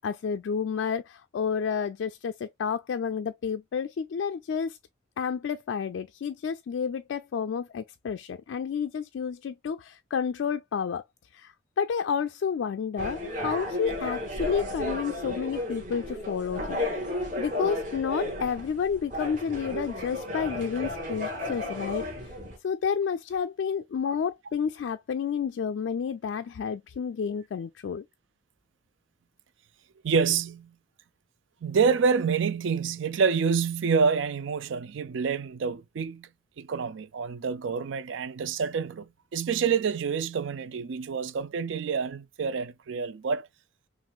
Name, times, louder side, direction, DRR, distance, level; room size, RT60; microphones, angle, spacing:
voice 1, 0.0-4.8 5.2-11.0 11.3-17.1 17.4-22.4 22.6-28.1, left 6 dB, 70° left, 0.3 m, -30 dB
sound 1, 13.0-22.6, left 1 dB, 45° right, 1.8 m, -33 dB
voice 2, 30.0-30.7 31.6-36.3 36.6-43.5, right 6 dB, 70° right, 0.4 m, -27 dB
5.9 x 2.5 x 2.3 m
head